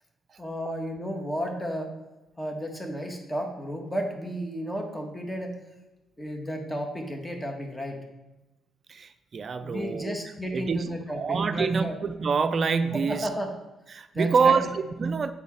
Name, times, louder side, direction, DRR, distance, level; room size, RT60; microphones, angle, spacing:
voice 1, 0.4-1.9 2.4-5.6 6.2-8.0 9.6-12.0 12.9-13.5 14.1-14.7, equal, 15° left, 3 dB, 1.5 m, -33 dB
voice 2, 8.9-10.2 10.5-13.3 13.9-15.3, right 5 dB, 45° right, 11 dB, 0.5 m, -26 dB
8.1 x 4.3 x 4.4 m, 1.0 s
hypercardioid pair, 45°, 0 cm